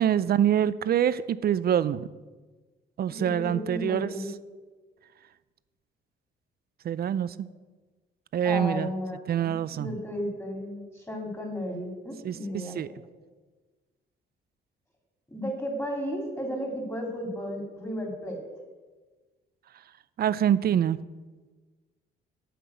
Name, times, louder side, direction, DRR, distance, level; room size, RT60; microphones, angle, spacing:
voice 1, 0.0-2.1 3.0-4.1 6.8-7.5 8.3-8.9 9.3-10.0 12.2-12.9 20.2-21.0, right 9 dB, 50° right, 17 dB, 0.5 m, -25 dB
voice 2, 3.1-4.3 8.4-13.1 15.3-18.4, equal, 15° left, 1 dB, 3.1 m, -34 dB
8.5 x 5.9 x 8.1 m, 1.3 s
cardioid pair, 90°, 20 cm